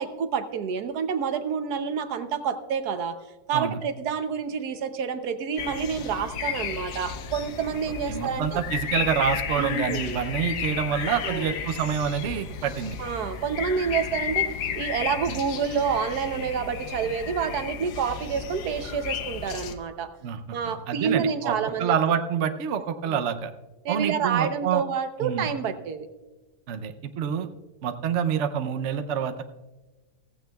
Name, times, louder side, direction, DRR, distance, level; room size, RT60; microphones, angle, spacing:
voice 1, 0.0-3.2 3.5-8.6 9.6-10.2 11.2-11.5 13.0-20.1 20.5-21.9 22.4-22.5 23.1-23.2 23.8-26.1, right 6 dB, 75° right, 9 dB, 1.3 m, -28 dB
sound 1, 5.6-19.7, left 7 dB, 80° left, 1.5 m, -33 dB
voice 2, 8.1-13.0 15.3-15.4 20.2-23.5 23.9-24.8 25.2-25.5 26.7-27.5 27.8-29.4, right 8 dB, 60° right, 8 dB, 0.9 m, -27 dB
15.5 x 15.0 x 2.3 m, 1.2 s
omnidirectional pair, 1.7 m